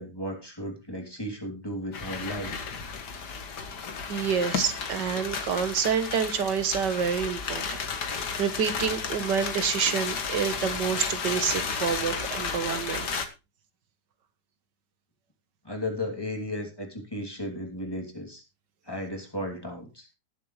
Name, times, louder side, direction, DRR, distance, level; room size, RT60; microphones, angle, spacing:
voice 1, 0.0-2.5 15.6-18.4 18.9-20.1, left 1 dB, 15° left, 2 dB, 2.9 m, -35 dB
sound 1, 1.9-13.3, left 5 dB, 70° left, 2.1 m, -33 dB
voice 2, 4.1-13.2, right 7 dB, 85° right, 10 dB, 1.8 m, -28 dB
19.5 x 7.5 x 3.2 m, 0.28 s
omnidirectional pair, 1.8 m